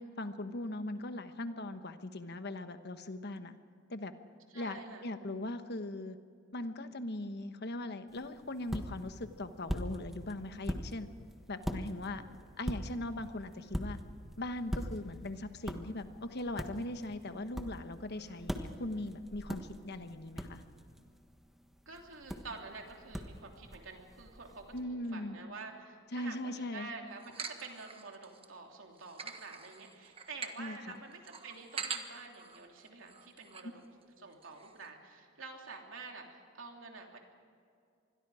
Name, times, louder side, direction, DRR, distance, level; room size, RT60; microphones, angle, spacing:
voice 1, 0.0-3.5 3.9-4.1 4.5-6.2 6.5-11.1 11.5-12.2 12.6-14.0 14.4-20.6 24.7-25.4 26.1-26.9 30.6-31.0 33.6-33.7, left 1 dB, 55° left, 9 dB, 1.2 m, -40 dB
voice 2, 4.5-5.1 12.2-12.4 18.2-18.4 21.8-33.8 34.2-37.2, right 4 dB, 75° right, 2 dB, 3.2 m, -48 dB
sound 1, 8.1-24.8, equal, ahead, 1.3 m, -43 dB
sound 2, 27.2-28.5 28.9-33.7 34.0-34.1 34.3-34.9, right 5 dB, 30° right, 1.4 m, -44 dB
26.5 x 21.5 x 5.0 m, 2.3 s
head